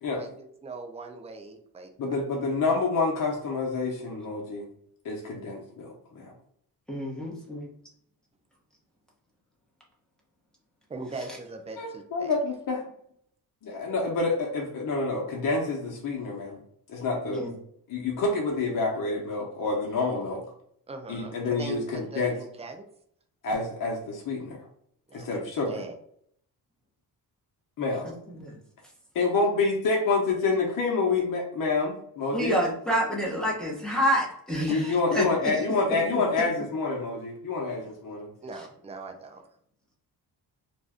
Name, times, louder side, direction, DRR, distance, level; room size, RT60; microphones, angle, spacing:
voice 1, 0.2-1.9 10.9-12.3 20.9-22.9 25.1-26.0 34.7-35.0 38.4-39.4, right 3 dB, 15° right, 5 dB, 0.4 m, -40 dB
voice 2, 2.0-4.7 5.0-6.3 11.8-12.8 13.6-16.6 16.9-17.4 17.9-20.4 21.1-22.3 23.4-24.6 25.1-25.8 27.8-28.1 29.1-32.6 34.7-38.3, left 3 dB, 55° left, -1 dB, 0.8 m, -28 dB
voice 3, 6.9-7.7 17.2-17.5 28.3-28.6 32.3-35.5 35.9-36.2, equal, ahead, -3 dB, 0.9 m, -28 dB
2.6 x 2.2 x 3.4 m, 0.67 s
cardioid pair, 100°, 39 cm